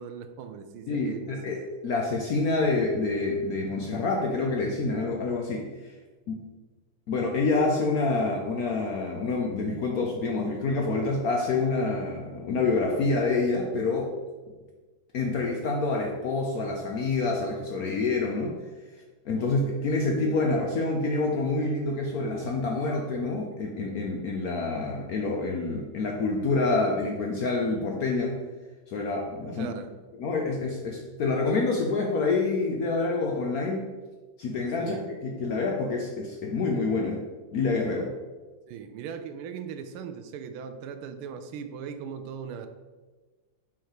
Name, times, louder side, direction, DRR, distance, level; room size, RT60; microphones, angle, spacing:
voice 1, 0.0-1.6 19.4-19.6 29.6-29.9 34.8-35.1 38.7-42.7, right 7 dB, 90° right, 8 dB, 1.5 m, -39 dB
voice 2, 0.9-5.9 6.3-6.4 7.1-14.1 15.1-18.5 19.3-28.4 28.9-29.8 30.2-33.9 34.4-37.2 37.5-38.1, left 3 dB, 70° left, 0 dB, 0.9 m, -27 dB
5.7 x 4.6 x 4.8 m, 1.3 s
omnidirectional pair, 2.3 m